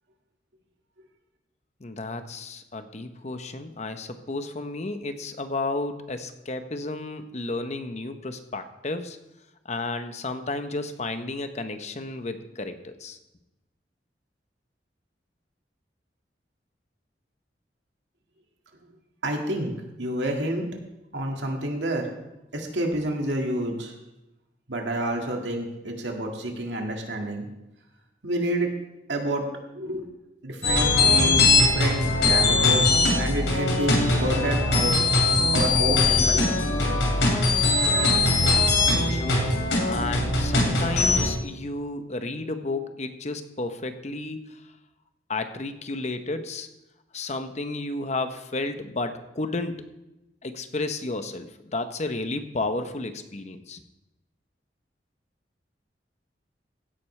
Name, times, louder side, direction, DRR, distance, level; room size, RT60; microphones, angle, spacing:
voice 1, 1.8-9.2 9.7-13.2 39.1-39.4 39.8-44.4 45.3-46.7 47.1-49.8 50.4-53.8, left 2 dB, 40° left, 9 dB, 0.8 m, -32 dB
voice 2, 19.2-20.7 21.1-22.1 22.5-23.9 24.7-27.5 28.2-28.7 29.1-29.4 29.7-30.1 30.4-35.0 35.5-36.5, right 1 dB, 85° right, 2 dB, 2.0 m, -29 dB
sound 1, 30.6-41.2, left 2 dB, 80° left, 3.0 m, -21 dB
16.0 x 9.4 x 3.3 m, 0.94 s
head